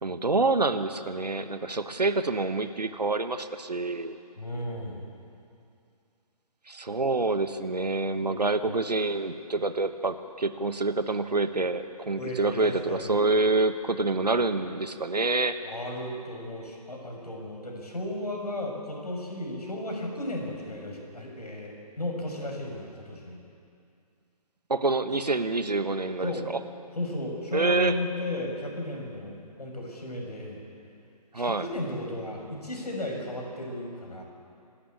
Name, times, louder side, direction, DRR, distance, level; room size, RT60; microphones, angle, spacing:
voice 1, 0.0-4.2 6.7-15.6 24.7-26.6 27.5-28.0 31.3-31.7, right 3 dB, 80° right, 10 dB, 1.4 m, -27 dB
voice 2, 4.4-5.1 12.2-13.3 15.6-23.4 26.2-26.4 26.9-30.6 31.3-34.2, left 1 dB, 75° left, 0 dB, 6.5 m, -34 dB
26.5 x 13.0 x 8.9 m, 2.5 s
figure-of-eight pair, 135°, 21 cm